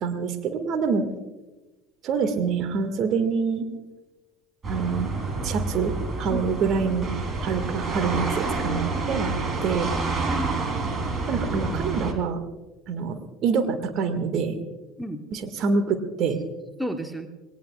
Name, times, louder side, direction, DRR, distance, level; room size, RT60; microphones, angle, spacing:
voice 1, 0.0-1.1 2.0-3.7 4.7-5.1 5.4-7.1 7.4-9.4 9.6-9.9 11.3-12.4 12.9-14.6 15.3-16.4, right 5 dB, 45° right, 6 dB, 1.9 m, -26 dB
sound 1, 4.6-12.1, right 3 dB, 30° right, 3.4 m, -28 dB
voice 2, 6.3-6.8 10.3-11.0 15.0-15.2 16.8-17.3, equal, ahead, 6 dB, 1.3 m, -33 dB
27.5 x 20.5 x 2.4 m, 1.1 s
figure-of-eight pair, 65°, 0 cm